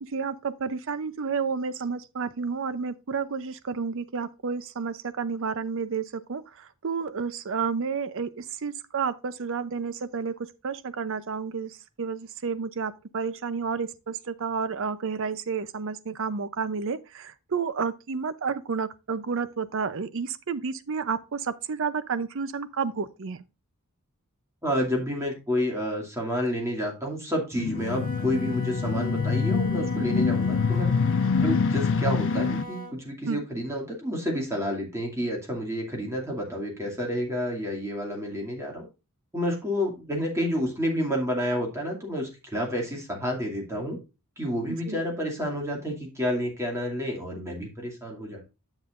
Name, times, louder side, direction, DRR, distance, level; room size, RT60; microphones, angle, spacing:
voice 1, 0.0-10.3 10.6-23.4 33.3-33.4 44.9-45.0, right 5 dB, 60° right, 0.6 m, -31 dB
voice 2, 24.6-30.9 31.4-38.9 39.3-44.0 44.4-48.4, equal, 15° right, 2.4 m, -29 dB
sound 1, 27.5-32.6, left 5 dB, 60° left, 0.5 m, -25 dB
Wind instrument woodwind instrument, 27.6-33.0, equal, 40° left, 1.4 m, -40 dB
10.0 x 7.1 x 2.5 m
head